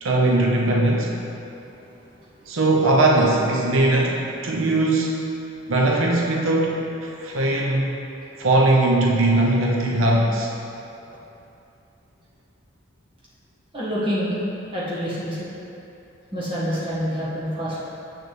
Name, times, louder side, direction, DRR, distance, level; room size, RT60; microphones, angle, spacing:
voice 1, 0.0-1.1 2.5-5.2 5.7-7.9 8.4-10.5, right 2 dB, 90° right, -2 dB, 0.8 m, -20 dB
voice 2, 13.7-14.4 14.7-15.5 16.3-17.8, equal, 25° right, -9 dB, 1.7 m, -27 dB
7.9 x 6.3 x 3.4 m, 2.8 s
head